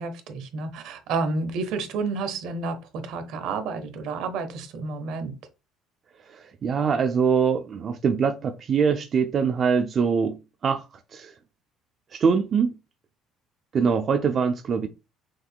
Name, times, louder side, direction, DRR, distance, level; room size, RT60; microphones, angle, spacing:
voice 1, 0.0-5.3, right 4 dB, 70° right, 1.0 m, -30 dB
voice 2, 6.3-10.8 11.1-11.3 12.1-12.7 13.7-14.9, right 6 dB, 45° right, 0.4 m, -23 dB
6.0 x 2.6 x 2.2 m
supercardioid pair, 100°, 0 cm